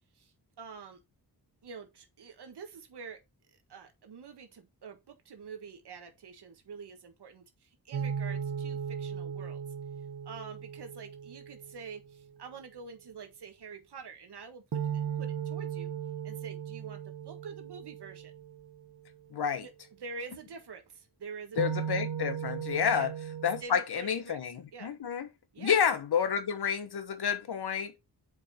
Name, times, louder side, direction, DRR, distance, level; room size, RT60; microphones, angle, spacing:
voice 1, 0.1-1.0 1.6-3.2 3.5-9.6 10.2-14.8 15.2-15.9 16.2-18.3 19.6-19.7 20.0-21.8 22.9-23.1 23.6-24.4 24.7-24.9 25.5-25.8, right 5 dB, 90° right, 1.5 m, -46 dB
sound 1, 7.9-12.1 14.7-18.9 21.6-23.6, right 8 dB, 65° right, 0.8 m, -37 dB
voice 2, 19.3-19.7 21.6-23.1 23.4-25.3 25.6-28.0, left 7 dB, 75° left, 1.1 m, -30 dB
5.3 x 5.1 x 4.4 m
wide cardioid pair, 125°, 39 cm